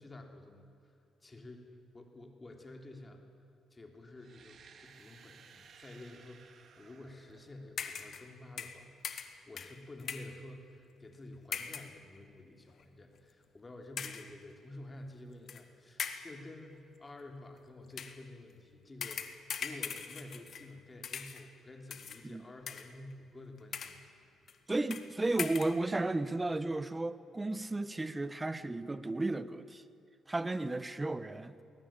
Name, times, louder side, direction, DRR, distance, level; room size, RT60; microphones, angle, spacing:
voice 1, 0.0-1.7 1.9-3.2 3.7-8.9 9.1-24.0 24.3-24.4, left 2 dB, 25° left, 4 dB, 3.3 m, -50 dB
sound 1, 4.1-8.1, right 6 dB, 60° right, 2.1 m, -59 dB
sound 2, 7.8-8.3 8.6-10.4 11.5-12.0 12.7-12.8 14.0-14.4 15.5-15.6 16.0-16.4 17.9-18.2 19.0-20.8 21.0-21.5 21.9-22.2 22.7-23.1 23.6-24.1 24.5-24.6 24.9-25.1 25.4-25.8, left 7 dB, 55° left, 1.8 m, -41 dB
voice 2, 24.7-29.8 30.3-31.5, right 2 dB, 15° right, 14 dB, 1.1 m, -34 dB
21.5 x 18.5 x 8.9 m, 2.8 s
cardioid pair, 90°, 0 cm